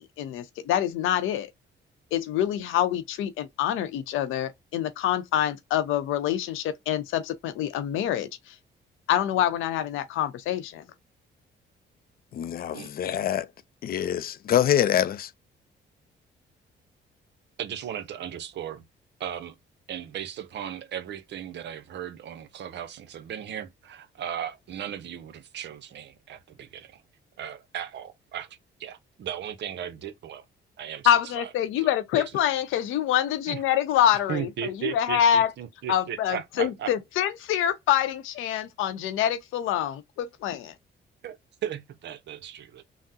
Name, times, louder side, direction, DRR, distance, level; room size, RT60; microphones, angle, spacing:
voice 1, 0.0-1.5 2.1-8.6 9.1-10.8 31.0-35.5 35.9-40.7, left 10 dB, 90° left, 0.6 m, -26 dB
voice 2, 12.3-13.5 13.8-15.3, left 10 dB, 50° left, 0.4 m, -25 dB
voice 3, 17.6-18.8 19.2-19.6 19.9-27.0 27.4-30.4 30.8-31.5 31.8-32.4 33.5-33.6 34.3-36.9 41.2-41.4 41.6-42.8, right 10 dB, 65° right, 0.6 m, -36 dB
3.6 x 2.0 x 2.6 m
cardioid pair, 90°, 20 cm